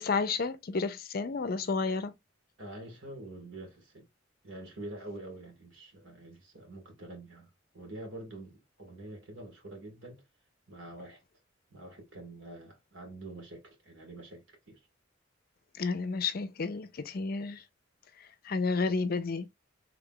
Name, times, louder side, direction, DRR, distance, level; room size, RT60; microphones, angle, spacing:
voice 1, 0.0-2.1 15.8-17.6 18.4-19.4, left 4 dB, 50° left, 0.5 m, -31 dB
voice 2, 2.6-4.0 4.4-10.2 10.7-11.2 11.7-14.8, right 2 dB, 80° right, 1.8 m, -46 dB
3.5 x 2.4 x 3.6 m
head